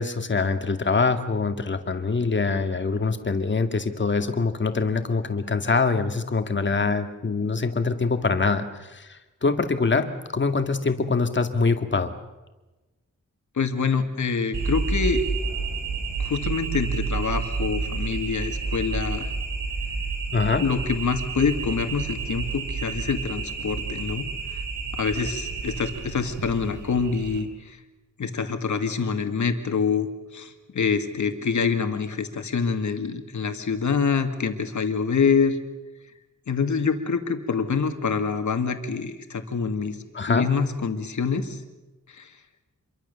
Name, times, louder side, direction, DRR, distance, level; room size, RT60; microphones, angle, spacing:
voice 1, 0.0-12.1 20.3-20.6 40.1-40.5, left 4 dB, 35° left, 7 dB, 2.0 m, -24 dB
voice 2, 13.6-15.2 16.2-19.3 20.6-24.3 24.9-27.8 28.2-35.6 36.5-40.0 40.3-41.6 42.2-42.3, left 5 dB, 70° left, 7 dB, 2.4 m, -26 dB
sound 1, 14.5-27.4, right 4 dB, 75° right, 4.4 m, -30 dB
27.0 x 23.0 x 7.0 m, 1.1 s
wide cardioid pair, 175°, 31 cm